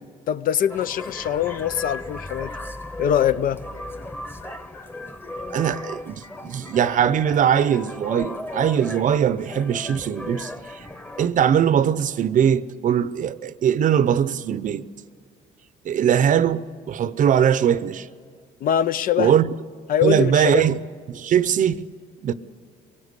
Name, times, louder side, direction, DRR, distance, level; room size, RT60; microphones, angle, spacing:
voice 1, 0.3-2.5 3.0-3.6 18.6-19.3 19.9-20.6, left 10 dB, 55° left, 0.6 m, -22 dB
sound 1, 0.7-11.3, left 2 dB, 15° left, 1.2 m, -36 dB
voice 2, 5.5-10.9 11.2-14.9 15.8-18.1 19.2-19.5 20.0-20.8 21.1-21.8 22.2-22.3, right 9 dB, 50° right, 0.7 m, -21 dB
23.0 x 18.5 x 8.2 m
cardioid pair, 110°, 17 cm